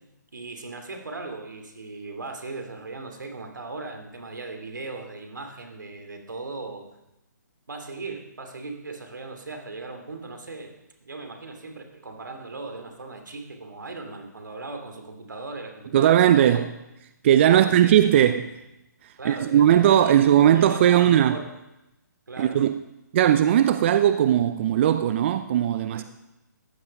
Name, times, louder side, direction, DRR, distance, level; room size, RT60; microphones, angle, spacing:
voice 1, 0.3-6.8 7.7-10.7 11.0-16.7 17.5-18.0 19.2-21.5 22.3-22.6 25.9-26.0, right 3 dB, 85° right, 2.9 m, -38 dB
voice 2, 15.9-16.6 17.2-18.6 19.2-21.4 22.4-22.7 23.1-26.0, right 11 dB, 40° right, 0.5 m, -18 dB
15.0 x 10.5 x 5.4 m
hypercardioid pair, 145°, 10 cm